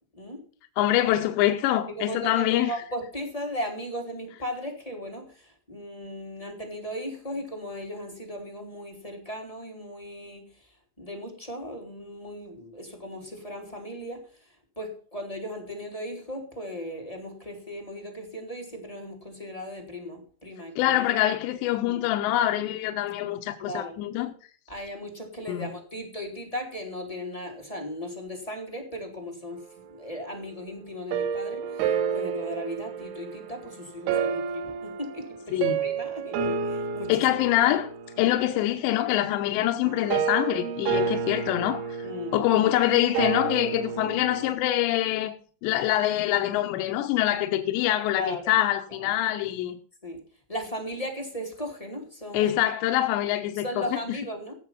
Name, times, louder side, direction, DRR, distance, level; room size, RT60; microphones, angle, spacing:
voice 1, 0.8-2.8 20.8-24.3 25.5-25.7 35.5-35.8 37.1-42.1 42.3-45.4 45.6-49.8 52.3-53.9, left 13 dB, 80° left, 3.0 m, -25 dB
voice 2, 1.9-10.5 11.0-21.0 21.8-22.0 23.6-24.0 24.7-29.6 29.9-37.2 38.2-38.3 42.0-42.4 48.1-48.6 49.0-49.1 50.0-50.2 50.5-52.5 53.6-54.5, equal, 10° left, 2.4 m, -37 dB
sound 1, 31.1-44.5, right 7 dB, 90° right, 3.8 m, -31 dB
17.5 x 6.3 x 5.7 m
omnidirectional pair, 5.2 m